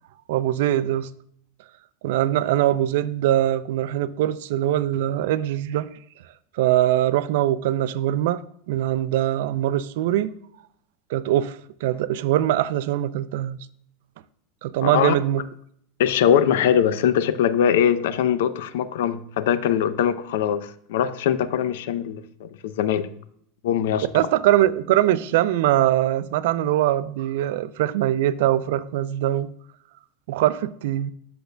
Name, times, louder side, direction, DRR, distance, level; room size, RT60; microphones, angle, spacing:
voice 1, 0.3-1.1 2.0-5.9 6.5-10.3 11.1-13.6 14.6-15.4 24.1-29.5 30.3-31.1, right 13 dB, 65° right, 0.4 m, -22 dB
voice 2, 14.8-15.2 16.0-23.1 23.6-24.2, left 9 dB, 75° left, 0.5 m, -22 dB
10.0 x 6.6 x 2.2 m
supercardioid pair, 170°, 0 cm